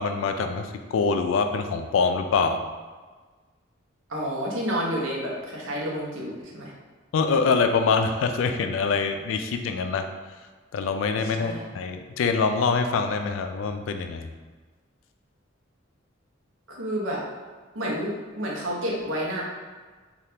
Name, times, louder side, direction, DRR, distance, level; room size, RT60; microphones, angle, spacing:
voice 1, 0.0-2.6 7.1-10.1 10.7-14.3, left 5 dB, 75° left, 6 dB, 0.3 m, -24 dB
voice 2, 4.1-6.7 11.3-11.7 16.7-17.2 17.7-19.4, equal, 75° right, -3 dB, 0.8 m, -30 dB
3.3 x 2.4 x 2.8 m, 1.4 s
head